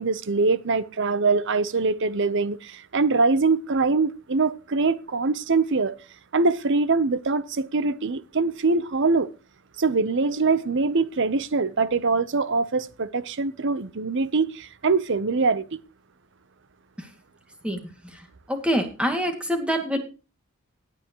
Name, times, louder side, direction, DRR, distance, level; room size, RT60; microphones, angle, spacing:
voice 1, 0.0-6.0 6.3-9.3 9.8-15.8, right 3 dB, 60° right, 0.8 m, -23 dB
voice 2, 17.6-20.0, equal, 5° right, 2.2 m, -26 dB
17.0 x 9.6 x 3.0 m
head